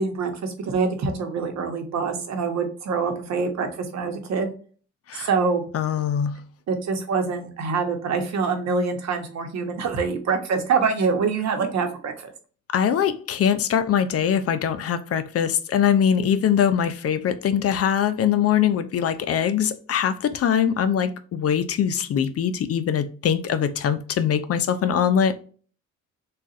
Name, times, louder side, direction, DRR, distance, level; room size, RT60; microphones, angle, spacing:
voice 1, 0.0-4.5 5.1-5.7 6.7-12.3, right 5 dB, 60° right, 0.9 m, -25 dB
voice 2, 5.7-6.4 12.7-25.4, left 8 dB, 50° left, 0.5 m, -22 dB
3.8 x 2.4 x 2.4 m
cardioid pair, 90°, 30 cm